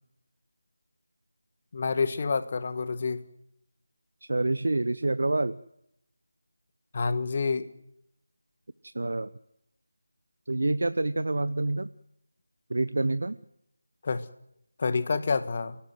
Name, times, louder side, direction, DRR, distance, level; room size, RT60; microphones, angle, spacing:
voice 1, 1.7-3.2 6.9-7.7 14.0-14.2 14.8-15.8, left 4 dB, 35° left, 13 dB, 1.4 m, -28 dB
voice 2, 4.3-5.6 8.8-9.3 10.5-11.9 12.7-13.4, right 2 dB, 60° right, 14 dB, 0.8 m, -27 dB
28.0 x 18.0 x 7.9 m, 0.81 s
figure-of-eight pair, 165°, 0 cm